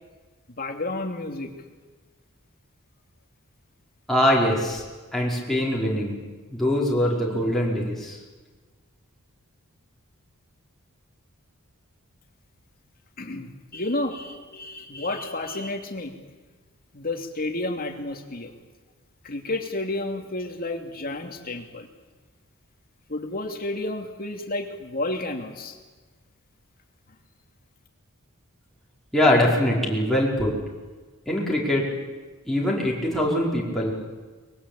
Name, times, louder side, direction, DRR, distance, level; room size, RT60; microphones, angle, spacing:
voice 1, 0.6-1.5 13.2-16.1 16.9-18.5 19.2-21.9 23.1-25.8, left 2 dB, 45° left, 4 dB, 2.8 m, -31 dB
voice 2, 4.1-4.8 5.1-6.2 6.5-8.2 29.1-30.5 31.3-31.8 32.5-33.9, left 1 dB, ahead, -5 dB, 5.2 m, -22 dB
24.0 x 21.5 x 8.9 m, 1.3 s
head